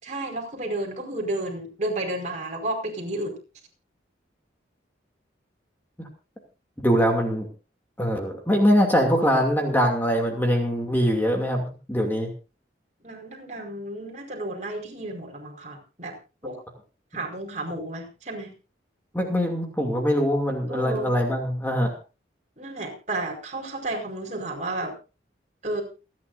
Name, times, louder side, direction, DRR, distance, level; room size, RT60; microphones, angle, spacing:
voice 1, 0.0-3.3 13.0-16.1 16.4-16.6 17.1-18.5 20.7-21.1 22.6-24.9 25.6-25.8, right 2 dB, 40° right, 1 dB, 5.0 m, -32 dB
voice 2, 6.8-7.5 8.0-12.3 19.1-21.9, equal, 10° left, 2 dB, 2.6 m, -23 dB
28.5 x 10.5 x 2.7 m, 0.32 s
head